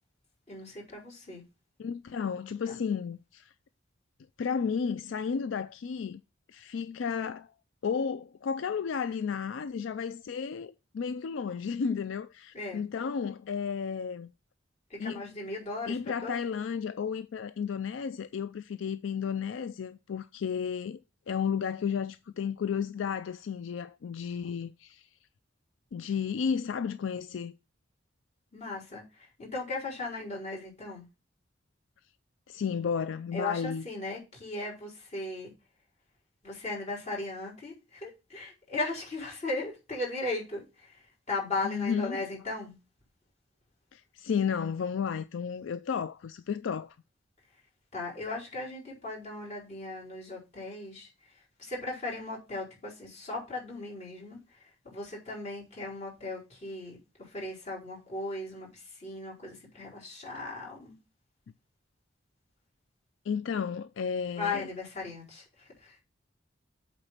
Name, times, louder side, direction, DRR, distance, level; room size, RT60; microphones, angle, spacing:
voice 1, 0.5-1.4 2.7-2.8 12.5-12.8 14.9-16.4 28.5-31.1 33.3-35.5 36.4-41.0 41.3-42.8 47.9-51.1 51.6-54.4 54.8-61.0 64.4-66.0, left 2 dB, 40° left, 4.5 m, -37 dB
voice 2, 1.8-3.5 4.4-6.2 6.5-7.5 7.8-14.3 15.0-15.3 15.9-21.0 21.3-25.1 25.9-27.5 32.5-33.8 41.6-42.2 43.9-47.0 63.3-64.7, left 6 dB, 75° left, 0.4 m, -33 dB
8.0 x 4.3 x 5.7 m
head